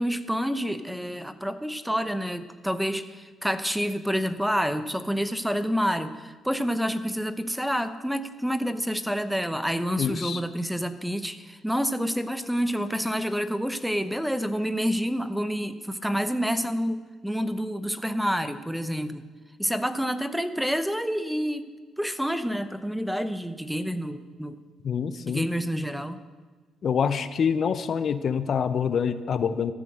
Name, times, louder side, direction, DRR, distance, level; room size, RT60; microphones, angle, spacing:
voice 1, 0.0-19.2 19.6-21.6 22.0-24.6 25.3-26.2, equal, ahead, 11 dB, 0.8 m, -28 dB
voice 2, 10.0-10.4 24.8-25.5 26.8-29.7, left 7 dB, 55° left, 13 dB, 0.6 m, -26 dB
14.0 x 7.5 x 7.8 m, 1.4 s
cardioid pair, 90°, 0 cm